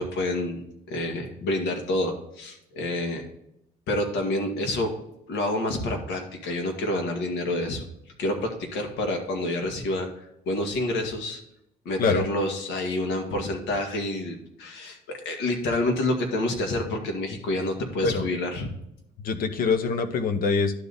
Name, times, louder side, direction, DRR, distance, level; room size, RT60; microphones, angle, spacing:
voice 1, 0.0-3.2 3.9-4.9 5.3-7.8 8.2-11.4 11.9-18.7, left 1 dB, 85° left, 3 dB, 1.8 m, -28 dB
voice 2, 19.2-20.7, left 4 dB, 60° left, 9 dB, 1.0 m, -24 dB
11.5 x 4.1 x 3.6 m, 0.81 s
cardioid pair, 110°, 17 cm